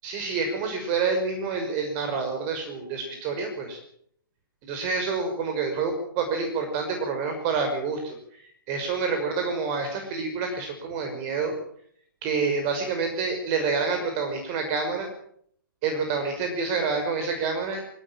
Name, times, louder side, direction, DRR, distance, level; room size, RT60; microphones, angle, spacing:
voice 1, 0.0-3.8 4.6-11.5 12.2-15.1 15.8-17.8, right 4 dB, 25° right, 6 dB, 5.7 m, -28 dB
28.5 x 17.0 x 7.5 m, 0.66 s
figure-of-eight pair, 130°, 12 cm